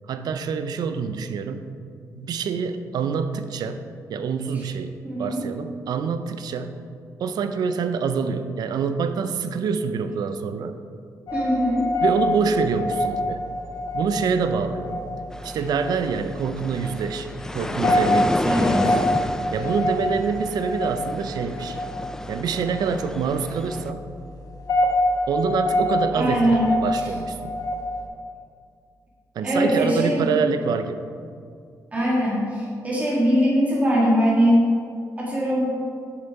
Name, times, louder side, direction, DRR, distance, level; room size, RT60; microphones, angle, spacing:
voice 1, 0.1-1.8 2.1-3.8 4.1-6.8 7.2-10.8 12.0-13.4 13.9-15.1 15.4-18.5 19.5-21.8 22.3-24.1 25.3-27.5 29.3-31.1, right 5 dB, 75° right, 9 dB, 0.5 m, -26 dB
voice 2, 5.0-5.4 11.3-11.8 18.4-19.0 26.1-26.7 29.4-30.2 31.9-34.6 35.2-35.8, equal, 20° right, -6 dB, 1.9 m, -21 dB
sound 1, 11.3-28.1, left 1 dB, 65° left, 1.1 m, -27 dB
sound 2, 15.3-23.9, left 1 dB, 10° left, 0.3 m, -31 dB
7.0 x 6.7 x 4.7 m, 2.3 s
cardioid pair, 110°, 7 cm